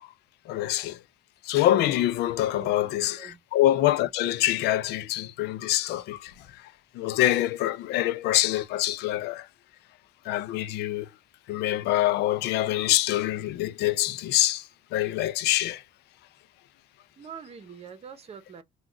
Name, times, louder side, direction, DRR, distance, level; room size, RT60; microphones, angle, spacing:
voice 1, 0.5-1.0 1.4-6.3 6.9-9.5 10.3-11.1 11.5-14.7 14.9-15.8, left 14 dB, 80° left, 0.4 m, -25 dB
voice 2, 17.2-18.6, right 7 dB, 35° right, 0.8 m, -44 dB
3.7 x 2.3 x 2.2 m
cardioid pair, 110°, 17 cm